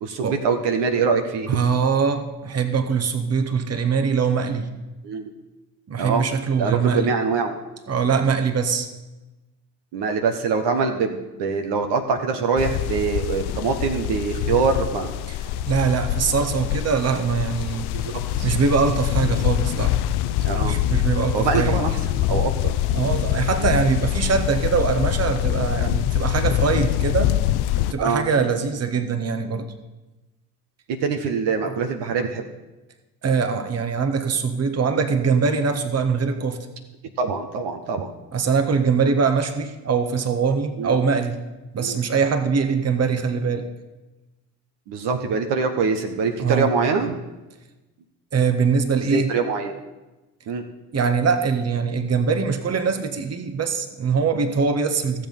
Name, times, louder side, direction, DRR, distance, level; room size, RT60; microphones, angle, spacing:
voice 1, 0.0-1.6 5.0-5.2 6.0-6.2 6.6-7.5 9.9-15.1 17.9-18.5 20.4-20.8 21.3-22.8 28.0-28.3 30.9-32.5 37.2-38.1 40.8-41.0 41.8-42.0 44.9-47.2 48.9-49.7 50.5-50.6, right 5 dB, 55° right, 5 dB, 1.3 m, -24 dB
voice 2, 1.5-4.7 5.9-7.1 7.9-8.9 15.7-17.9 18.4-19.9 20.6-21.7 22.9-27.4 27.8-29.7 33.2-36.7 38.3-41.4 41.7-43.7 46.4-46.7 48.3-49.3 50.9-55.3, right 5 dB, 30° right, 7 dB, 1.4 m, -22 dB
sound 1, 12.6-27.9, left 12 dB, 50° left, 0.6 m, -24 dB
14.0 x 7.7 x 5.4 m, 1.1 s
hypercardioid pair, 60°, 50 cm